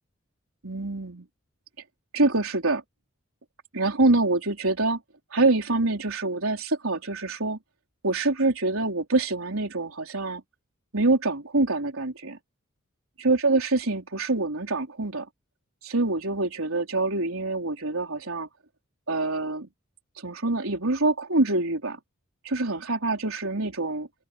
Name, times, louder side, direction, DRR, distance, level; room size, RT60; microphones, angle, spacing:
voice 1, 0.6-1.3 2.1-2.8 3.7-5.0 5.3-7.6 8.0-10.4 10.9-12.4 13.2-15.3 15.8-18.5 19.1-19.7 20.2-22.0 22.4-24.1, right 2 dB, 90° right, 4.0 m, -25 dB
open air
head